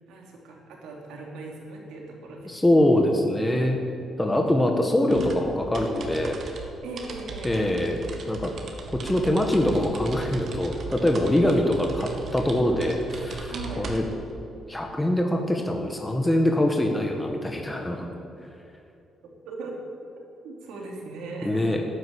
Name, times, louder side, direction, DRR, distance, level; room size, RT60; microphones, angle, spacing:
voice 1, 0.1-2.6 6.8-7.6 11.4-11.6 13.5-13.9 19.2-19.7 20.4-21.9, right 3 dB, 90° right, 0 dB, 3.0 m, -39 dB
voice 2, 2.5-3.8 4.2-6.4 7.4-8.0 8.3-8.5 9.0-14.0 14.7-18.1 21.4-21.8, left 1 dB, 10° left, 2 dB, 1.6 m, -23 dB
sound 1, 5.1-14.3, right 4 dB, 55° right, 2.1 m, -38 dB
12.5 x 9.9 x 8.7 m, 2.7 s
cardioid pair, 90°, 0 cm